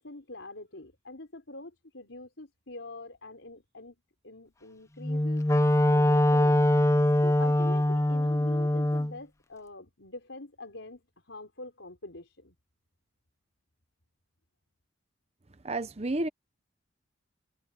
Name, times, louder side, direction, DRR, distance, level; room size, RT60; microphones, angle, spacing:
voice 1, 0.0-3.9 4.2-6.6 7.2-12.5, left 2 dB, 80° left, 4.6 m, -44 dB
Wind instrument woodwind instrument, 5.0-9.1, left 1 dB, 15° left, 0.4 m, -23 dB
voice 2, 15.6-16.3, right 2 dB, 35° right, 0.8 m, -30 dB
head